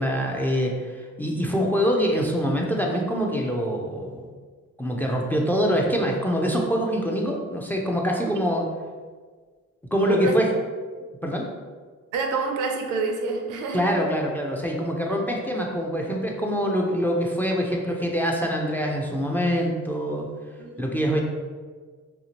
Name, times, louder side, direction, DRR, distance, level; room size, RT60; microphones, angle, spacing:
voice 1, 0.0-4.3 4.8-8.7 9.9-10.5 11.2-11.5 13.7-20.3 20.8-21.2, equal, 5° left, 0 dB, 0.3 m, -24 dB
voice 2, 10.0-10.4 12.1-13.8 20.6-21.1, right 4 dB, 85° right, 3 dB, 0.5 m, -28 dB
2.8 x 2.4 x 2.8 m, 1.5 s
cardioid pair, 90°, 30 cm